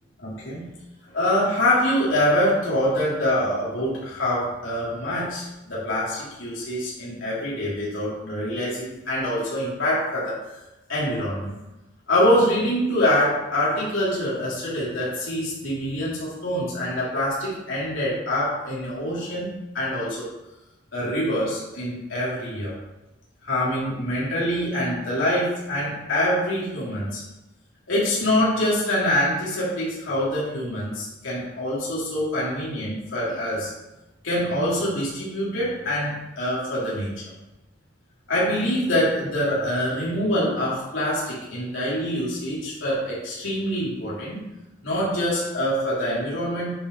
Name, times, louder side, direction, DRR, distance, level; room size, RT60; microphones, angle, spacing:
voice 1, 0.2-0.7 1.1-10.6 10.9-11.6 12.1-20.3 20.9-22.7 23.4-27.2 27.9-33.7 34.2-37.1 38.3-44.4 44.8-46.7, left 1 dB, 80° left, -8 dB, 3.3 m, -25 dB
10.0 x 5.3 x 4.8 m, 1.0 s
head